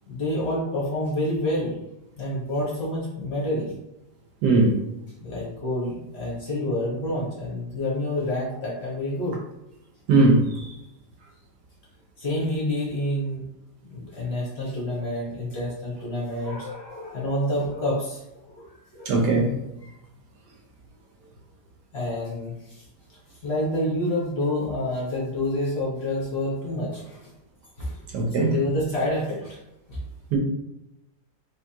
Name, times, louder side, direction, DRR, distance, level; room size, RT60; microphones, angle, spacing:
voice 1, 0.1-1.8 2.2-3.7 5.2-9.4 12.2-13.4 13.8-19.1 19.8-19.9 21.9-22.8 23.4-27.3 27.8-28.0 28.3-29.6 29.9-30.0, left 1 dB, 45° left, -5 dB, 1.0 m, -28 dB
voice 2, 4.4-4.8 10.1-10.7 19.1-19.5 28.1-28.6 30.3-30.4, right 3 dB, 65° right, 0 dB, 1.3 m, -19 dB
3.7 x 3.2 x 2.8 m, 0.91 s
omnidirectional pair, 2.1 m